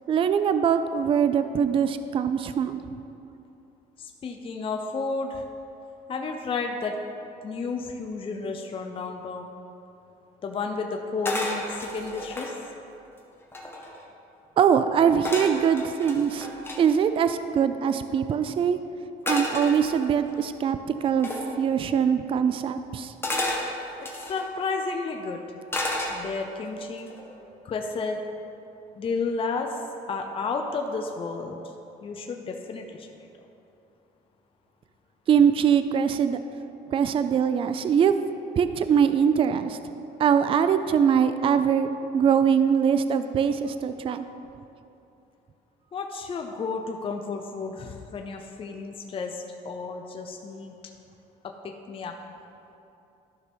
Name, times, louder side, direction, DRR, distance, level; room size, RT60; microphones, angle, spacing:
voice 1, 0.1-2.8 14.6-16.5 16.8-18.8 19.3-21.3 21.6-23.1 35.3-36.4 36.9-38.1 38.6-39.8 40.2-41.9 42.1-44.2, right 7 dB, 30° right, 10 dB, 0.3 m, -22 dB
voice 2, 4.0-5.4 6.1-7.0 7.4-9.5 10.4-12.5 24.0-25.4 26.1-27.1 27.6-28.2 29.0-29.8 30.1-31.6 32.0-33.1 45.9-50.7 51.4-52.1, left 4 dB, 35° left, 3 dB, 0.6 m, -32 dB
sound 1, 11.2-12.5 13.1-13.2 13.4-14.0 15.2-16.8 19.3-20.3 21.2-21.5 23.2-24.4 25.7-26.5 27.0-27.3, left 1 dB, 15° left, 1.3 m, -31 dB
12.5 x 5.8 x 3.5 m, 2.8 s
cardioid pair, 110°, 17 cm